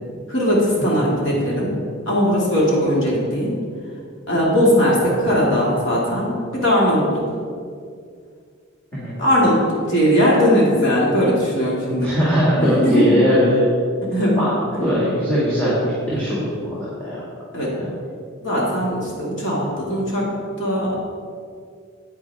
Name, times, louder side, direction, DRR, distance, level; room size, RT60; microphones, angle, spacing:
voice 1, 0.3-1.7 2.1-3.6 4.3-7.2 9.2-12.2 12.6-13.2 14.1-14.4 14.7-14.9 16.0-16.3 17.5-17.7 18.4-20.2 20.6-21.0, equal, 60° left, -5 dB, 2.4 m, -19 dB
voice 2, 12.0-13.6 14.2-14.5 14.8-17.2, equal, 10° left, -9 dB, 2.3 m, -20 dB
9.7 x 9.0 x 3.6 m, 2.2 s
head